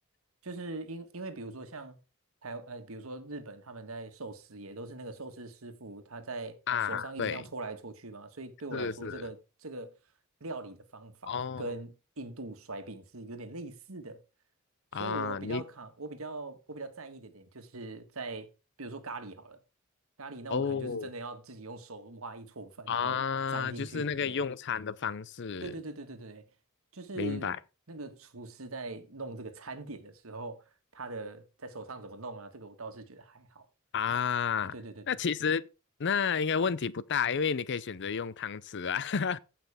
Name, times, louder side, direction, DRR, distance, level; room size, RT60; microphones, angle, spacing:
voice 1, 0.4-2.0 2.4-9.9 10.4-14.2 14.9-18.5 18.8-19.6 20.2-23.2 23.5-24.4 25.6-26.5 26.9-27.5 27.9-30.6 30.9-33.7 34.7-35.1, right 3 dB, 85° right, 1.6 m, -42 dB
voice 2, 6.7-7.4 8.7-9.2 11.3-11.7 14.9-15.6 20.5-21.1 22.9-25.7 27.1-27.6 33.9-34.7 35.1-35.6 36.0-39.4, left 6 dB, 55° left, 0.6 m, -31 dB
15.5 x 5.8 x 3.5 m
head